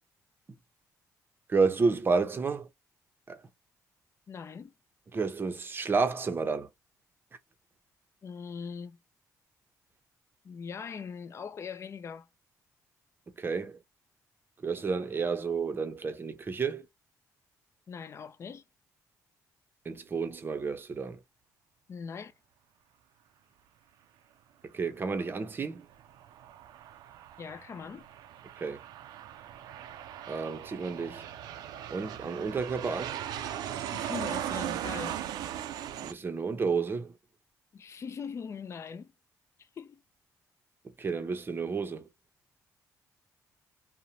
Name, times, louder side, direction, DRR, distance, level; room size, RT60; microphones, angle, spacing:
voice 1, 1.5-2.7 3.3-3.4 5.1-6.7 13.4-13.8 14.6-16.9 19.8-21.2 24.7-25.9 28.6-28.8 30.3-31.3 31.9-33.2 36.0-37.1 41.0-42.1, right 4 dB, 30° right, 0.6 m, -30 dB
voice 2, 4.3-4.7 8.2-9.0 10.4-12.3 17.9-18.6 21.9-22.3 27.4-28.1 33.9-35.2 37.7-39.1 39.6-40.0, left 6 dB, 45° left, 0.4 m, -41 dB
Aircraft, 25.9-36.1, right 11 dB, 85° right, 0.3 m, -38 dB
2.6 x 2.1 x 2.8 m
cardioid pair, 80°, 7 cm